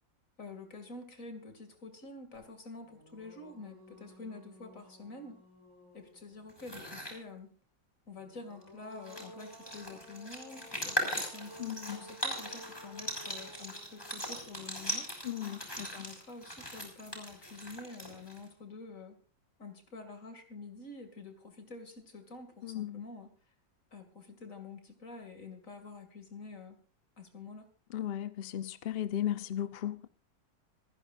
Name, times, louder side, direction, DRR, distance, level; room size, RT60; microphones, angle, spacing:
voice 1, 0.4-5.4 5.9-7.5 8.1-15.1 15.7-19.2 19.6-23.3 23.9-26.8 27.2-27.7, left 3 dB, 45° left, 2.8 m, -48 dB
sound 1, 2.3-2.4 2.8-6.5 8.2-15.4, left 1 dB, 85° left, 5.7 m, -54 dB
sound 2, 6.5-7.2 8.6-8.7 8.9-18.5, equal, 10° left, 5.8 m, -39 dB
voice 2, 11.6-12.0 15.2-15.9 22.6-23.0 27.9-30.1, left 11 dB, 60° left, 0.6 m, -36 dB
27.5 x 10.5 x 2.6 m
omnidirectional pair, 2.1 m